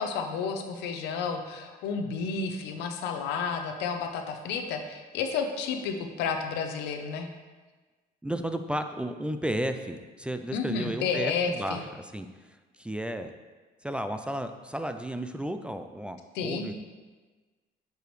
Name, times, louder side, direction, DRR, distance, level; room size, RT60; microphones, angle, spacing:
voice 1, 0.0-7.3 10.5-11.8 16.3-16.7, left 5 dB, 90° left, 6 dB, 0.7 m, -31 dB
voice 2, 8.2-13.3 13.8-16.7, right 1 dB, 5° right, 8 dB, 0.3 m, -33 dB
8.0 x 4.8 x 3.1 m, 1.3 s
cardioid pair, 110°, 17 cm